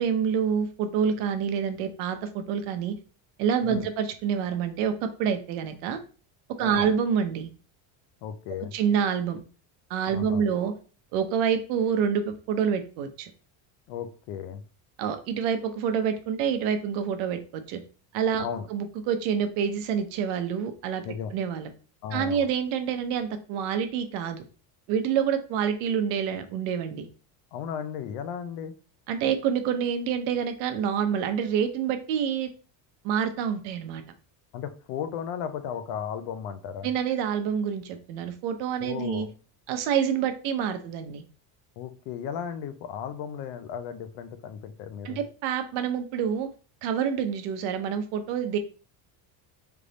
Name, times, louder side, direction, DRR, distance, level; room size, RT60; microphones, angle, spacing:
voice 1, 0.0-3.0 3.4-6.0 6.6-7.5 8.7-9.4 9.9-10.7 11.1-13.3 15.0-17.8 18.1-21.0 21.3-21.7 22.1-24.4 24.9-27.1 29.1-32.5 33.0-34.0 36.8-39.3 39.7-41.2 45.0-46.5 46.8-48.6, right 7 dB, 70° right, 8 dB, 0.8 m, -27 dB
voice 2, 8.2-8.7 10.1-10.5 13.9-14.6 18.4-18.7 21.0-21.3 22.0-22.5 27.5-28.7 34.5-36.9 38.8-39.3 41.8-45.2, left 8 dB, 65° left, 10 dB, 0.7 m, -35 dB
3.5 x 3.4 x 3.9 m, 0.37 s
cardioid pair, 180°, 45 cm